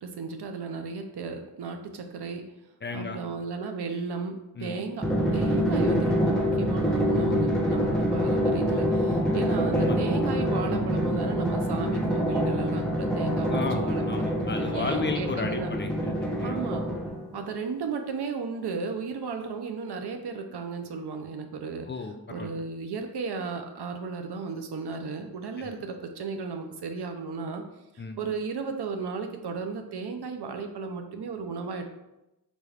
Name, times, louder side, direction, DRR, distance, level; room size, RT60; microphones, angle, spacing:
voice 1, 0.0-2.4 2.9-15.7 16.4-16.8 17.3-21.9 22.3-27.6 27.9-31.9, right 4 dB, 75° right, 6 dB, 0.6 m, -34 dB
voice 2, 2.8-3.2 4.6-4.7 9.7-10.0 13.5-16.6 21.9-22.5 25.6-25.7 28.0-28.2, left 4 dB, 30° left, 5 dB, 0.3 m, -33 dB
Drum, 5.0-17.4, equal, ahead, 0.8 m, -26 dB
3.9 x 2.3 x 3.3 m, 0.93 s
cardioid pair, 45°, 40 cm